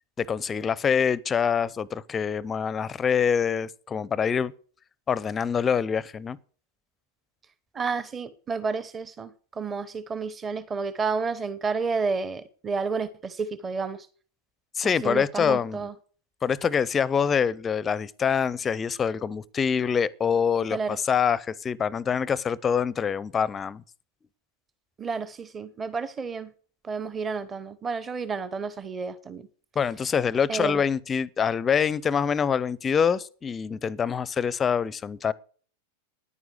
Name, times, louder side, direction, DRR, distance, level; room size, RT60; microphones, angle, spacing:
voice 1, 0.2-4.5 5.1-6.4 14.8-15.8 16.4-23.8 29.8-35.3, left 7 dB, 20° left, 0.5 m, -25 dB
voice 2, 7.7-14.1 14.8-15.9 20.7-21.0 25.0-26.5 26.8-29.5 30.5-30.8, right 4 dB, 20° right, 0.9 m, -31 dB
10.0 x 9.4 x 6.4 m
figure-of-eight pair, 90°, 0 cm